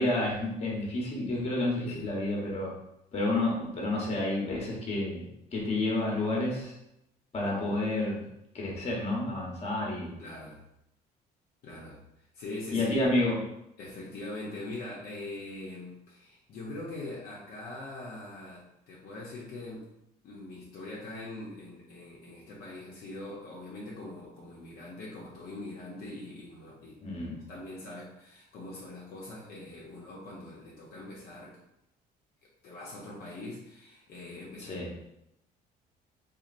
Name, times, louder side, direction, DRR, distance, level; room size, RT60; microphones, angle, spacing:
voice 1, 0.0-2.7 3.1-5.3 5.5-6.8 7.3-8.3 8.5-10.1 12.7-13.4 27.0-27.4 34.7-34.9, left 2 dB, 40° left, -3 dB, 1.0 m, -30 dB
voice 2, 10.2-10.6 11.6-12.0 12.3-12.9 13.8-19.9 20.2-27.2 27.5-31.6 32.6-34.8, left 2 dB, 65° left, -4 dB, 0.7 m, -42 dB
2.8 x 2.5 x 2.5 m, 0.82 s
cardioid pair, 110°, 17 cm